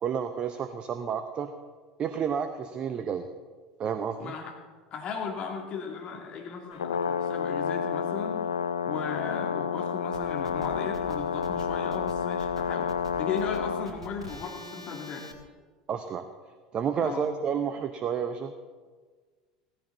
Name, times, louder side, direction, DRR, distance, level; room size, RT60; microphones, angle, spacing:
voice 1, 0.0-1.5 2.0-3.3 3.8-4.3 15.9-16.2 16.7-18.5, right 7 dB, 35° right, 9 dB, 0.8 m, -30 dB
voice 2, 4.2-4.5 4.9-8.5 8.9-15.3 17.0-17.2, left 6 dB, 35° left, 1 dB, 2.7 m, -36 dB
Brass instrument, 6.7-13.9, left 6 dB, 70° left, 0.6 m, -30 dB
sound 1, 10.1-15.3, equal, 85° right, 1.7 m, -45 dB
16.5 x 15.0 x 4.1 m, 1.5 s
figure-of-eight pair, 75°, 3 cm